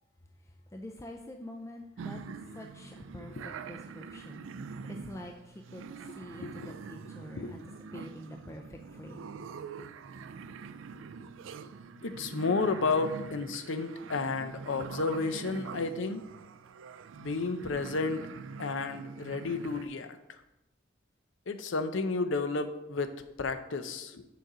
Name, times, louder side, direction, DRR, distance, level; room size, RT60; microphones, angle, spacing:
voice 1, 0.7-2.2 2.5-7.6 7.9-9.3, left 1 dB, 15° left, 3 dB, 0.4 m, -46 dB
sound 1, 2.0-19.9, right 5 dB, 80° right, 0.4 m, -44 dB
voice 2, 6.4-6.7 7.4-7.5 12.0-16.3 17.2-18.3 18.6-20.2 21.5-24.3, left 3 dB, 75° left, 9 dB, 0.6 m, -32 dB
6.7 x 6.2 x 3.9 m, 0.93 s
head